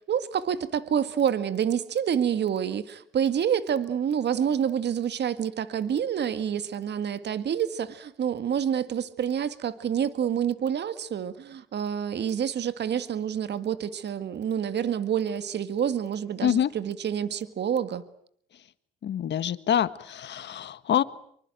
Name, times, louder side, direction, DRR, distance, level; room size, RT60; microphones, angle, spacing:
voice 1, 0.1-18.0, right 8 dB, 60° right, 13 dB, 1.9 m, -28 dB
voice 2, 19.0-21.0, left 9 dB, 60° left, 15 dB, 1.6 m, -26 dB
25.5 x 24.0 x 9.2 m, 0.65 s
cardioid pair, 90°, 20 cm